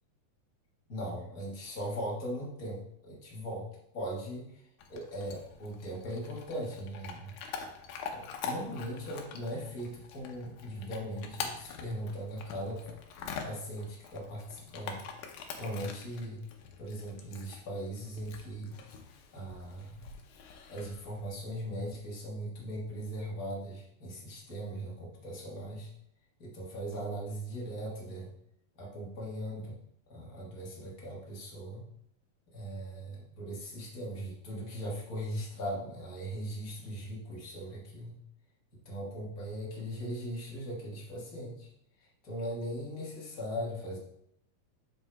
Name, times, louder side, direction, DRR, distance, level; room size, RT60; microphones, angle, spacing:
voice 1, 0.9-3.7 3.9-4.6 4.9-7.4 8.1-12.9 13.4-15.1 15.6-16.4 16.8-18.8 19.3-20.2 20.7-25.9 26.4-28.3 28.8-29.7 30.1-31.8 32.5-38.2 38.8-41.7 42.0-44.0, equal, 55° left, -4 dB, 1.0 m, -39 dB
Chewing mastication / Dog, 4.8-21.3, left 6 dB, 75° left, 2.1 m, -45 dB
8.0 x 6.3 x 2.3 m, 0.74 s
omnidirectional pair, 3.8 m